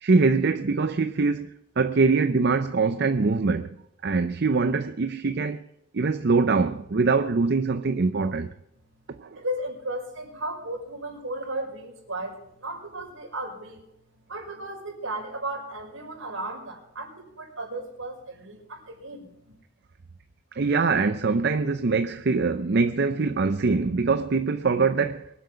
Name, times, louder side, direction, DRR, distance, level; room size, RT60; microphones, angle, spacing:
voice 1, 0.0-1.5 1.8-3.7 4.0-5.6 5.9-8.5 9.2-9.4 20.6-25.3, right 4 dB, 55° right, 0.6 m, -23 dB
voice 2, 9.3-13.8 14.3-19.5, right 1 dB, 80° right, 5.4 m, -35 dB
23.5 x 7.8 x 5.7 m
head